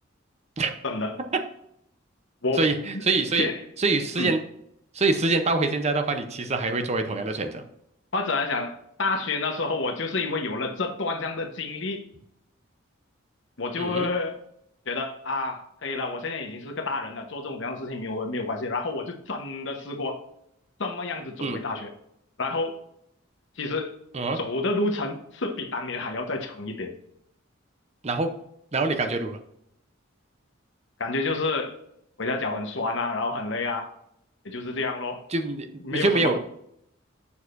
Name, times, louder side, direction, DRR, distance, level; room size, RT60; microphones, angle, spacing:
voice 1, 0.8-1.2 2.4-2.7 2.9-3.0 3.4-3.6 4.2-4.3 8.1-12.0 13.6-14.4 14.9-20.2 20.8-21.9 22.4-22.8 23.6-23.9 24.3-26.9 31.0-31.8 32.2-33.9 34.4-35.2 35.8-36.4, left 3 dB, 65° left, 5 dB, 1.0 m, -29 dB
voice 2, 2.6-3.5 3.8-4.4 4.9-7.6 13.8-14.1 21.4-21.6 24.1-24.4 28.0-28.3 28.7-29.4 35.3-36.4, right 3 dB, 35° right, 7 dB, 0.7 m, -25 dB
7.0 x 6.4 x 2.6 m, 0.75 s
head